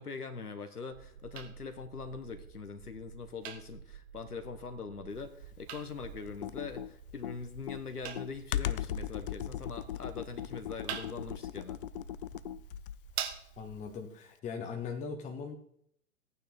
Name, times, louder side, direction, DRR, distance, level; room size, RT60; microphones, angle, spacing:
voice 1, 0.0-11.8, left 5 dB, 90° left, 8 dB, 1.3 m, -42 dB
sound 1, 0.9-13.9, right 9 dB, 45° right, 1.5 m, -46 dB
Computer keyboard, 6.3-13.1, left 12 dB, 40° left, 0.5 m, -38 dB
voice 2, 13.6-15.6, left 5 dB, 15° left, 4 dB, 1.1 m, -39 dB
15.0 x 9.0 x 4.3 m, 0.69 s
figure-of-eight pair, 115°, 44 cm